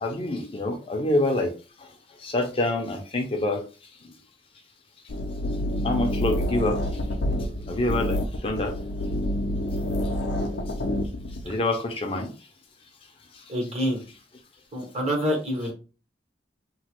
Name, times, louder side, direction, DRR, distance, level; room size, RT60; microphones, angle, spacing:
voice 1, 0.0-1.5 2.2-3.6 5.8-6.8 7.7-8.2 8.4-8.7 11.5-12.3, left 1 dB, 30° left, 3 dB, 0.5 m, -26 dB
sound 1, 5.1-11.4, left 1 dB, 85° left, 0.5 m, -28 dB
voice 2, 13.5-14.0 14.7-15.7, equal, 40° right, 1 dB, 0.9 m, -26 dB
3.0 x 2.1 x 2.9 m, 0.34 s
head